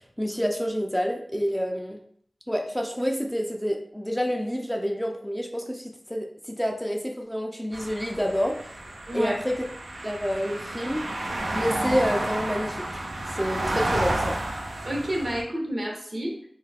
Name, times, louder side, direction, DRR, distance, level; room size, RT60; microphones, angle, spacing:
voice 1, 0.0-2.0 2.5-8.6 9.1-9.6 10.0-11.1 11.5-13.0 13.3-14.4, equal, 5° left, 1 dB, 0.4 m, -28 dB
sound 1, 7.7-15.4, right 1 dB, 85° right, 0.4 m, -31 dB
voice 2, 9.1-9.4 14.8-16.5, right 1 dB, 60° right, -1 dB, 0.8 m, -30 dB
2.7 x 2.3 x 3.3 m, 0.64 s
wide cardioid pair, 45°, 0 cm